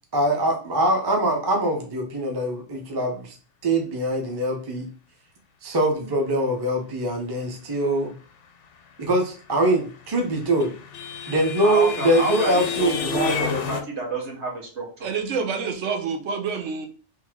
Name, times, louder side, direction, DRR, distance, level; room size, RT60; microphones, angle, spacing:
voice 1, 0.1-3.4 3.6-4.9 5.6-8.1 9.0-10.7 11.3-13.8, right 1 dB, 30° right, 2 dB, 0.5 m, -23 dB
sound 1, 9.9-13.8, left 6 dB, 85° left, 0.9 m, -30 dB
voice 2, 11.6-15.1, right 2 dB, 70° right, -2 dB, 1.5 m, -30 dB
voice 3, 15.0-16.9, right 5 dB, 85° right, 6 dB, 1.0 m, -27 dB
3.3 x 2.7 x 3.4 m, 0.38 s
omnidirectional pair, 1.2 m